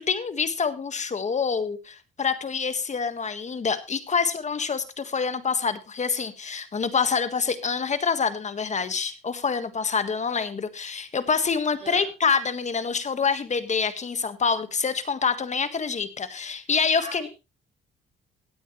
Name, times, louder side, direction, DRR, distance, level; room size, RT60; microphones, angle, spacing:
voice 1, 0.1-17.3, left 5 dB, 35° left, 12 dB, 1.6 m, -26 dB
voice 2, 11.7-12.1 17.0-17.3, right 3 dB, 40° right, -4 dB, 5.0 m, -40 dB
17.0 x 9.3 x 3.2 m, 0.27 s
cardioid pair, 90°, 20 cm